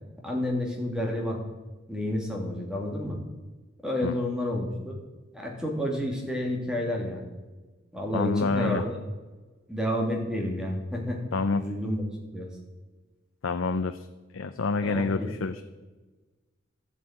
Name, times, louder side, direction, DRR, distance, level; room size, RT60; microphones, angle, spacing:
voice 1, 0.2-1.4 1.9-3.2 3.8-5.0 5.3-7.2 7.9-9.0 9.7-11.2 11.5-12.0 12.3-12.5 14.8-15.6, left 1 dB, 5° right, -1 dB, 2.6 m, -30 dB
voice 2, 8.1-8.8 11.3-11.6 13.4-14.0 14.3-15.6, left 4 dB, 85° left, 9 dB, 0.6 m, -27 dB
12.5 x 8.1 x 8.8 m, 1.2 s
head